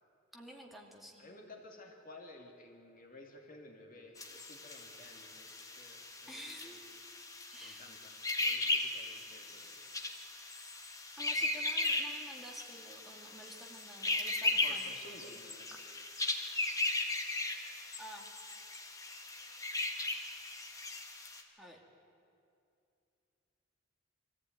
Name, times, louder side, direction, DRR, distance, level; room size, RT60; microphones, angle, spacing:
voice 1, 0.3-1.3 6.3-6.8 7.5-7.9 11.2-14.9 18.0-18.2 21.6-21.8, equal, ahead, 0 dB, 2.2 m, -51 dB
voice 2, 1.2-6.8 7.6-8.1 8.4-9.9 11.2-11.5 14.5-15.7, left 2 dB, 45° left, 2 dB, 2.5 m, -54 dB
sound 1, 4.2-21.4, left 2 dB, 20° left, 1.8 m, -37 dB
23.5 x 15.0 x 9.4 m, 2.6 s
head